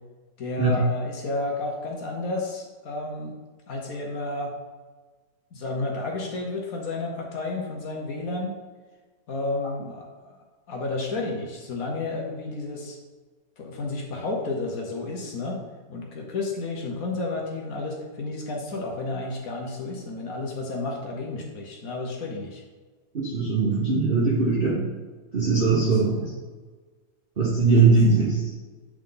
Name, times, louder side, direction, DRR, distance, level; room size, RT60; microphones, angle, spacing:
voice 1, 0.4-3.4 3.7-4.5 5.5-8.5 9.3-10.4 10.7-13.0 13.6-15.6 15.9-22.6 25.9-26.3 27.8-28.0, left 2 dB, 60° left, 0 dB, 1.3 m, -31 dB
voice 2, 23.1-24.9 25.3-26.3 27.4-28.4, right 4 dB, 40° right, -5 dB, 0.9 m, -21 dB
8.7 x 3.7 x 3.8 m, 1.4 s
omnidirectional pair, 1.8 m